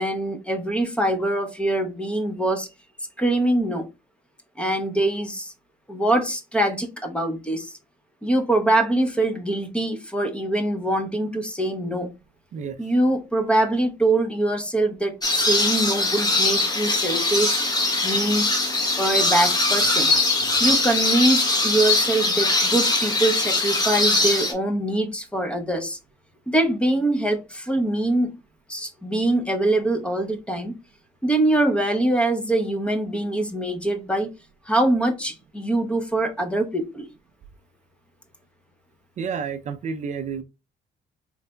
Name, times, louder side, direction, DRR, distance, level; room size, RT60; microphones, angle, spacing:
voice 1, 0.0-2.7 3.2-3.9 4.6-5.5 5.9-7.7 8.2-12.1 12.8-17.6 18.0-18.5 19.0-20.1 20.6-26.0 26.5-28.3 28.7-30.8 31.2-34.3 34.7-37.1, right 1 dB, 5° left, 0.7 m, -23 dB
sound 1, 15.2-24.5, left 2 dB, 25° left, 1.1 m, -21 dB
voice 2, 39.2-40.4, right 6 dB, 45° right, 0.5 m, -30 dB
4.0 x 3.2 x 2.2 m
cardioid pair, 110°, 17 cm